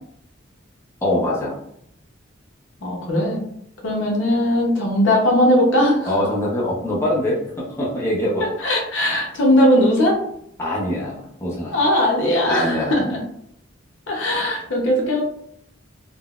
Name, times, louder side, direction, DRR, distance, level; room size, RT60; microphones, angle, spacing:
voice 1, 1.0-1.5 6.1-8.4 10.6-11.8 12.4-13.1, left 1 dB, 15° left, -5 dB, 0.6 m, -23 dB
voice 2, 2.8-3.4 3.8-6.1 8.6-10.2 11.7-13.2 14.1-15.2, left 1 dB, 70° left, -2 dB, 0.8 m, -19 dB
3.7 x 2.1 x 2.3 m, 0.71 s
head